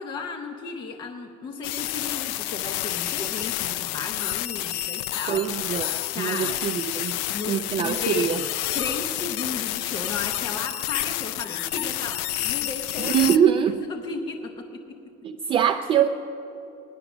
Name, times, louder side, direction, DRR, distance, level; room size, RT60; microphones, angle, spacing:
voice 1, 0.0-5.5 6.1-6.6 7.3-8.4 8.7-13.3 13.7-15.0, left 4 dB, 20° left, 4 dB, 0.6 m, -34 dB
sound 1, 1.6-13.4, left 15 dB, 80° left, 0.5 m, -29 dB
voice 2, 5.3-8.4 13.0-13.8 15.2-16.1, right 9 dB, 25° right, 5 dB, 0.3 m, -24 dB
18.0 x 11.0 x 6.0 m, 3.0 s
cardioid pair, 170°, 20 cm